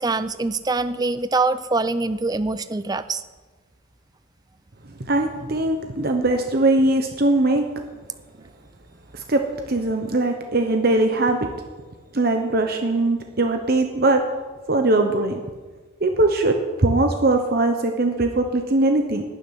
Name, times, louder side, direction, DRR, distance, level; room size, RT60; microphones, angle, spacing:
voice 1, 0.0-3.2, right 3 dB, 20° right, 13 dB, 0.5 m, -24 dB
voice 2, 5.1-7.6 9.1-11.5 12.1-14.2 14.7-15.4 16.0-19.2, right 2 dB, 45° right, 4 dB, 0.9 m, -20 dB
12.0 x 7.3 x 9.7 m, 1.3 s
head